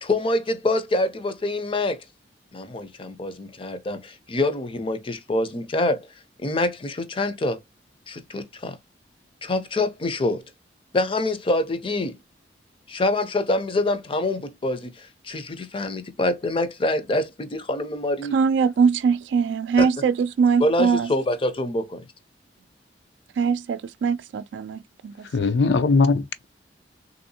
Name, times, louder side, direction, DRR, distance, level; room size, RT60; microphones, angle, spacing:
voice 1, 0.0-2.0 2.5-6.1 6.4-7.6 8.1-8.8 9.4-10.4 10.9-12.2 12.9-18.4 19.8-19.9 20.6-22.1, left 2 dB, 30° left, 0.5 m, -25 dB
voice 2, 18.3-21.1 23.4-25.3, right 6 dB, 90° right, 0.3 m, -22 dB
voice 3, 25.3-26.4, left 4 dB, 75° left, 0.5 m, -20 dB
3.4 x 2.7 x 2.7 m
head